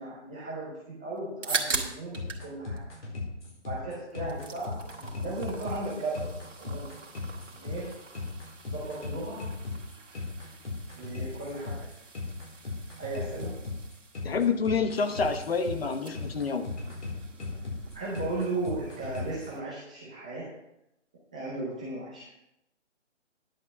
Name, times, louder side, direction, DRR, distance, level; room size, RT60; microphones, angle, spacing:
voice 1, 0.0-2.8 3.6-6.9 7.5-8.0 8.6-9.5 11.0-11.9 12.6-12.7 13.0-13.5 17.9-20.5 21.3-22.3, right 2 dB, 5° right, -8 dB, 0.6 m, -36 dB
sound 1, 1.2-2.5 2.8-3.8 4.1-19.6, right 4 dB, 80° right, 1.9 m, -41 dB
sound 2, 1.8-19.5, left 3 dB, 70° left, 4.6 m, -37 dB
voice 2, 14.2-16.7, left 5 dB, 55° left, 8 dB, 1.1 m, -28 dB
10.5 x 5.9 x 6.1 m, 0.85 s
figure-of-eight pair, 155°, 37 cm